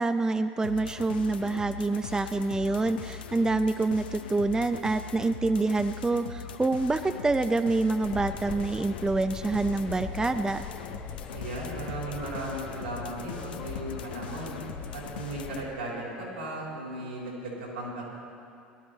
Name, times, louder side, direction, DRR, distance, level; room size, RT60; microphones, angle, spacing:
voice 1, 0.0-10.7, right 3 dB, 10° right, 10 dB, 0.5 m, -27 dB
sound 1, 0.6-15.6, left 7 dB, 75° left, 0.7 m, -41 dB
sound 2, 8.0-15.7, left 7 dB, 40° left, 0.7 m, -42 dB
voice 2, 11.3-14.5 14.9-18.1, right 2 dB, 80° right, -5 dB, 4.4 m, -36 dB
18.0 x 12.5 x 4.1 m, 2.4 s
figure-of-eight pair, 70°, 5 cm